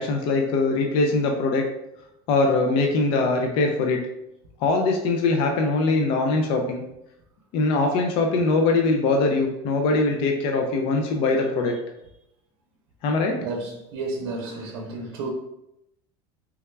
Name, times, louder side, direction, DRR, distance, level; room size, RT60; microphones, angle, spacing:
voice 1, 0.0-1.7 2.3-4.0 4.6-6.8 7.5-11.8 13.0-13.4, left 3 dB, 50° left, 2 dB, 0.4 m, -22 dB
voice 2, 13.4-15.3, right 3 dB, 90° right, 1 dB, 0.6 m, -32 dB
3.3 x 2.2 x 3.2 m, 0.85 s
cardioid pair, 155°, 12 cm